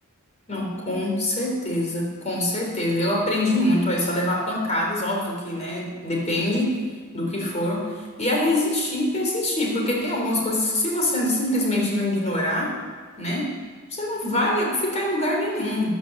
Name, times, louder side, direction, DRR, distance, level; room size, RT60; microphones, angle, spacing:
voice 1, 0.5-6.8 7.1-12.8 13.2-13.5 13.9-16.0, left 1 dB, 30° left, -1 dB, 3.8 m, -24 dB
15.5 x 10.5 x 7.3 m, 1.5 s
head